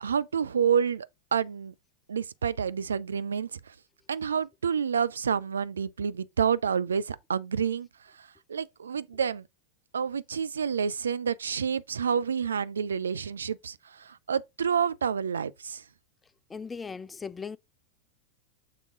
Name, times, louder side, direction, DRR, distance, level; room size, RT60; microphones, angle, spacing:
voice 1, 0.0-1.7 2.1-3.7 4.1-7.9 8.2-9.4 9.9-15.8, right 7 dB, 70° right, 0.4 m, -29 dB
voice 2, 16.5-17.6, left 5 dB, 15° left, 0.3 m, -38 dB
6.7 x 3.6 x 4.7 m
figure-of-eight pair, 90°, 0 cm